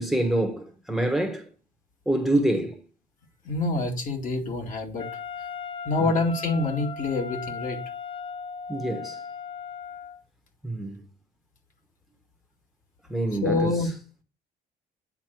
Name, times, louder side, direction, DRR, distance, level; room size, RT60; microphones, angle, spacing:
voice 1, 0.0-1.4 2.1-2.8 6.0-6.1 8.7-9.2 10.6-11.0 13.1-13.7, right 1 dB, ahead, 1.1 m, -26 dB
voice 2, 3.4-5.1 5.8-7.8 13.4-13.9, left 3 dB, 50° left, 2.3 m, -26 dB
Wind instrument woodwind instrument, 5.0-10.2, left 5 dB, 30° left, 0.9 m, -37 dB
9.3 x 4.0 x 6.0 m
cardioid pair, 110°, 17 cm